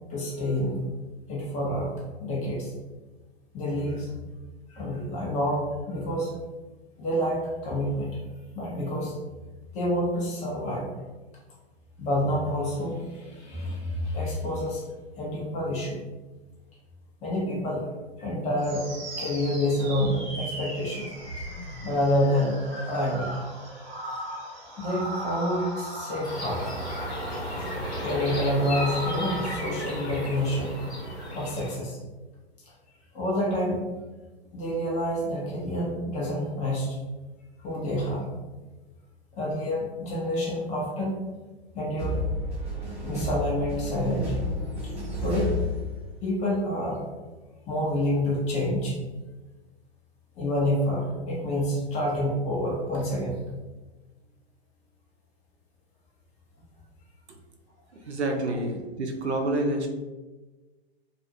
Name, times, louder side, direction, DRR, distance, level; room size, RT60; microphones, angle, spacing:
voice 1, 0.1-0.8 1.3-1.9 2.2-2.7 3.5-4.1 4.7-6.3 7.0-8.2 8.5-9.1 9.7-10.9 12.0-14.9 15.2-16.0 17.2-17.8 18.2-18.8 19.1-21.1 21.8-22.6 22.9-23.4 24.8-26.6 28.0-30.8 31.3-32.0 33.1-33.8 34.5-37.0 37.6-38.3 39.3-41.1 41.7-42.2 43.0-44.4 45.2-45.5 46.2-47.0 47.7-49.0 50.4-53.4, left 1 dB, 20° left, -3 dB, 0.7 m, -28 dB
sound 1, 18.6-29.8, right 1 dB, 60° right, 1.1 m, -37 dB
sound 2, 26.2-31.7, equal, 85° left, 1.0 m, -34 dB
sound 3, 42.0-46.4, left 1 dB, 20° right, 0.8 m, -31 dB
voice 2, 58.1-59.9, right 1 dB, 85° right, 3 dB, 0.5 m, -28 dB
2.4 x 2.3 x 2.7 m, 1.2 s
figure-of-eight pair, 110°, 32 cm